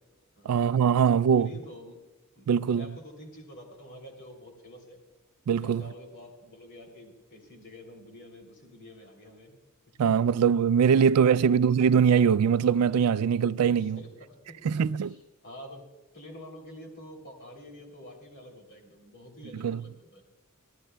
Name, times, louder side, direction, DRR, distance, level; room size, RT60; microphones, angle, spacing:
voice 1, 0.5-1.5 2.5-3.0 5.5-5.8 10.0-14.0 14.6-15.1 19.5-19.8, right 7 dB, 90° right, 0.3 m, -22 dB
voice 2, 1.1-2.0 2.3-5.0 5.5-9.6 10.9-11.6 13.7-14.8 15.0-15.2 15.4-15.8 16.1-20.2, left 1 dB, 55° left, 3.2 m, -48 dB
25.0 x 13.5 x 2.3 m
head